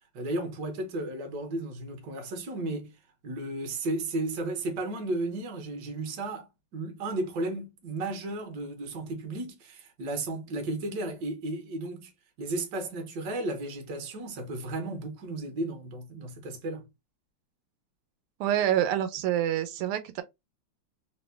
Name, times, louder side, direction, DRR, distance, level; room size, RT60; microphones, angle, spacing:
voice 1, 0.1-2.9 3.2-6.5 6.7-12.1 12.4-16.9, right 2 dB, 60° right, 1.4 m, -34 dB
voice 2, 18.4-20.2, right 11 dB, 90° right, 1.5 m, -27 dB
3.6 x 2.0 x 3.3 m
omnidirectional pair, 2.4 m